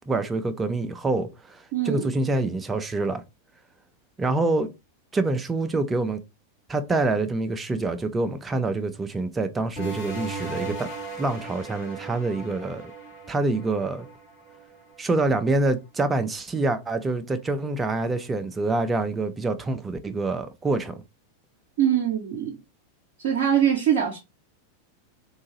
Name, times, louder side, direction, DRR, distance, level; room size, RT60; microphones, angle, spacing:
voice 1, 0.1-3.2 4.2-4.7 5.1-6.2 6.7-10.9 11.2-12.8 13.3-14.1 15.0-21.0, right 2 dB, 15° right, 0.5 m, -26 dB
voice 2, 1.7-2.1 21.8-22.6 23.2-24.2, right 9 dB, 55° right, 0.8 m, -23 dB
sound 1, 9.8-15.0, right 3 dB, 40° left, 2.0 m, -37 dB
3.5 x 2.7 x 2.9 m
figure-of-eight pair, 90°, 0 cm